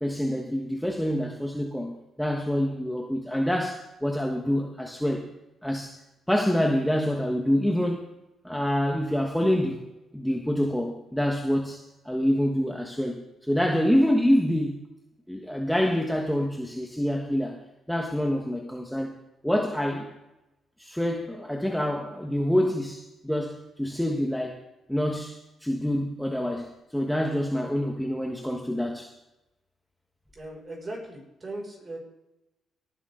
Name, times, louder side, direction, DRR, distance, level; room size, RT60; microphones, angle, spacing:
voice 1, 0.0-5.2 5.6-6.0 6.3-8.0 8.4-9.8 10.1-14.8 15.3-17.6 17.9-19.1 19.4-20.1 20.8-24.6 24.9-29.1, equal, ahead, 1 dB, 1.4 m, -26 dB
voice 2, 30.3-32.0, right 1 dB, 30° right, 0 dB, 6.1 m, -38 dB
18.0 x 9.7 x 3.9 m, 0.92 s
cardioid pair, 90°, 0 cm